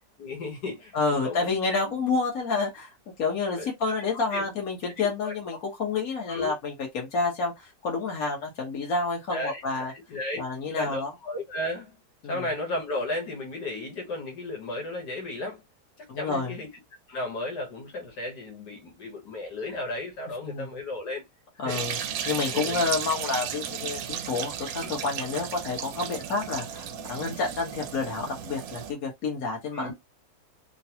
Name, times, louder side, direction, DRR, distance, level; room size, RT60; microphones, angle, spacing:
voice 1, 0.2-1.4 1.7-2.1 3.6-3.7 4.1-4.4 5.2-5.3 6.3-6.5 9.3-12.0 12.3-15.6 16.0-16.7 17.1-21.3 21.6-21.8 22.2-22.8 23.8-23.9 24.8-24.9 29.7-29.9, left 1 dB, 85° left, 1.8 m, -34 dB
voice 2, 0.9-2.9 3.2-9.9 10.4-11.1 12.2-12.5 16.1-16.5 20.4-20.7 21.6-22.0 22.3-29.9, left 4 dB, 60° left, 1.8 m, -29 dB
sound 1, 21.7-28.9, right 8 dB, 70° right, 1.0 m, -34 dB
3.8 x 2.3 x 2.8 m
omnidirectional pair, 1.8 m